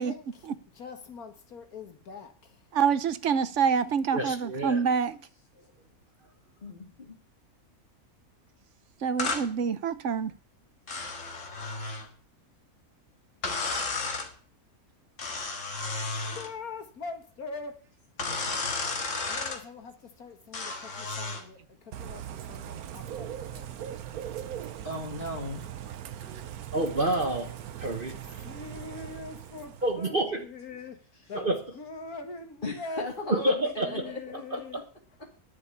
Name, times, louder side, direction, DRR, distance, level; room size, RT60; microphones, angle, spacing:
voice 1, 0.0-2.6 16.3-17.8 19.3-23.8 28.5-31.0 31.3-34.8, left 3 dB, 75° left, 2.1 m, -43 dB
voice 2, 2.7-5.2 9.0-10.3, right 6 dB, 60° right, 1.1 m, -26 dB
voice 3, 4.1-4.8 26.2-26.4 26.7-28.4 29.8-30.4 31.3-31.6 33.3-33.9 34.5-34.6, right 1 dB, 40° right, 1.5 m, -28 dB
voice 4, 6.6-7.2 24.8-25.7 31.2-31.3 32.6-34.2 34.7-34.8, left 1 dB, 35° left, 2.2 m, -36 dB
sound 1, 9.2-9.5 10.9-12.1 13.4-14.3 15.2-16.5 18.2-19.6 20.5-21.5, left 3 dB, 55° left, 2.1 m, -33 dB
Bird / Rain, 21.9-30.1, right 10 dB, 80° right, 1.3 m, -40 dB
10.5 x 7.4 x 8.3 m
omnidirectional pair, 1.5 m